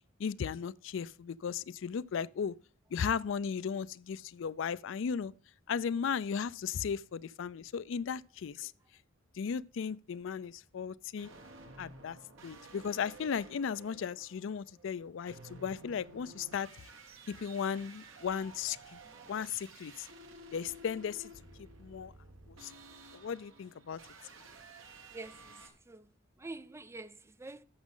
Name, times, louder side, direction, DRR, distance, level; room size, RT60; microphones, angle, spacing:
voice 1, 0.2-2.6 2.9-5.3 5.7-8.7 9.3-11.3 11.8-12.2 12.4-16.7 17.3-19.0 19.3-20.1 20.5-21.3 21.8-22.1 22.5-22.7 23.1-24.0, left 6 dB, 65° left, 0.4 m, -36 dB
sound 1, 11.2-25.7, right 2 dB, 75° right, 2.0 m, -53 dB
voice 2, 25.1-26.1 26.4-27.6, right 2 dB, 15° right, 0.4 m, -47 dB
11.0 x 7.3 x 3.7 m
head